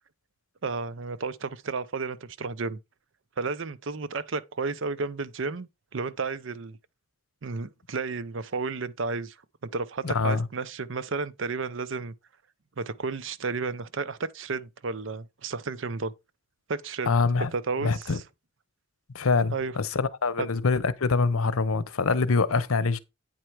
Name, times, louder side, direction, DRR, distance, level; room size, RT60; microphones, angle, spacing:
voice 1, 0.6-2.8 3.4-6.8 7.4-9.3 9.6-12.1 12.8-16.1 16.7-17.1 17.5-18.2 19.5-19.8 20.4-20.5, right 4 dB, 60° right, 0.6 m, -32 dB
voice 2, 10.0-10.4 17.1-17.5 17.8-18.2 19.1-23.0, left 4 dB, 90° left, 0.8 m, -25 dB
8.9 x 4.4 x 4.7 m
head